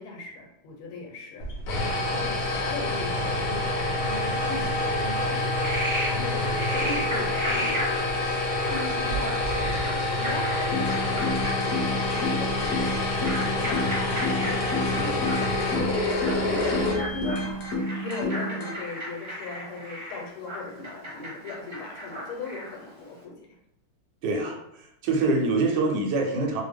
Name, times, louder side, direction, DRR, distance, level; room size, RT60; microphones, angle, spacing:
voice 1, 0.0-1.6 1.9-7.9 8.7-16.1 16.4-23.6, left 3 dB, 90° left, 1 dB, 1.6 m, -38 dB
sound 1, 1.4-17.6, left 2 dB, 70° left, 0.8 m, -27 dB
Frog, 5.4-22.8, equal, 45° right, 0.7 m, -35 dB
sound 2, 10.7-18.7, left 1 dB, 50° left, 1.1 m, -31 dB
voice 2, 24.2-26.6, right 3 dB, 70° right, 2 dB, 1.1 m, -25 dB
3.4 x 2.1 x 3.4 m, 0.78 s
omnidirectional pair, 2.3 m